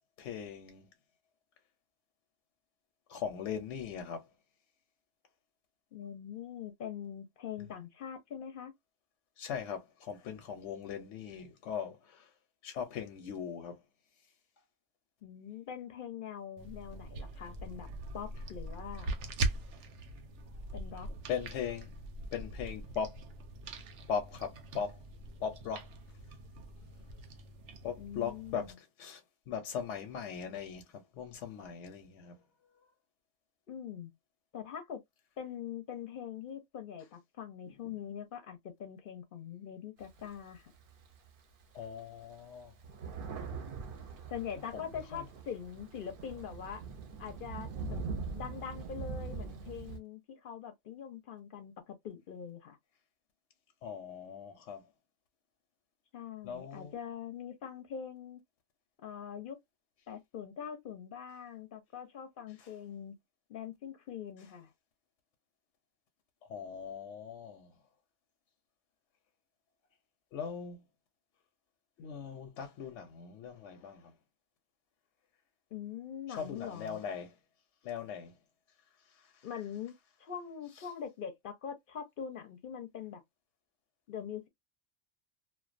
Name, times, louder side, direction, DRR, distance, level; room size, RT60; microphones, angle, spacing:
voice 1, 0.2-0.9 3.1-4.3 9.4-12.3 12.6-13.8 21.3-21.9 22.3-23.2 24.1-25.0 25.4-25.9 27.8-32.4 37.7-37.8 41.7-42.7 44.7-45.2 53.8-54.9 56.4-56.9 62.6-62.7 66.4-67.7 70.3-70.8 72.0-74.1 76.3-77.4 77.8-78.3 79.1-79.5 80.8-80.9, left 7 dB, 90° left, 0.9 m, -40 dB
voice 2, 5.9-8.7 15.2-17.9 18.1-19.2 20.7-21.1 28.0-28.7 33.7-34.1 34.5-35.0 35.4-40.7 44.3-46.8 47.2-52.8 56.1-58.4 59.0-59.6 60.1-63.1 63.5-64.7 75.7-77.0 79.4-83.2 84.1-84.5, left 8 dB, 60° left, 0.6 m, -43 dB
sound 1, 16.6-28.7, right 2 dB, 85° right, 0.9 m, -42 dB
Thunder, 40.0-41.3 41.8-41.9 42.2-50.0, right 5 dB, 60° right, 0.7 m, -42 dB
2.3 x 2.2 x 2.4 m
omnidirectional pair, 1.2 m